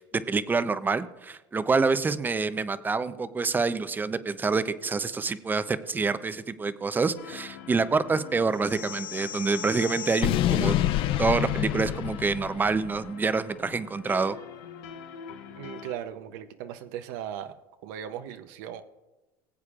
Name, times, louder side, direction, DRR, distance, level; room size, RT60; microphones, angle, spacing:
voice 1, 0.0-10.8 11.2-14.4, right 4 dB, 15° right, 13 dB, 0.6 m, -27 dB
sound 1, 7.1-15.9, left 7 dB, 75° left, 1.2 m, -45 dB
sound 2, 8.6-13.0, left 12 dB, 55° left, 0.5 m, -28 dB
voice 2, 15.6-17.5 17.8-18.8, right 10 dB, 75° right, 8 dB, 0.7 m, -37 dB
19.5 x 8.2 x 2.5 m, 1.1 s
supercardioid pair, 105°, 11 cm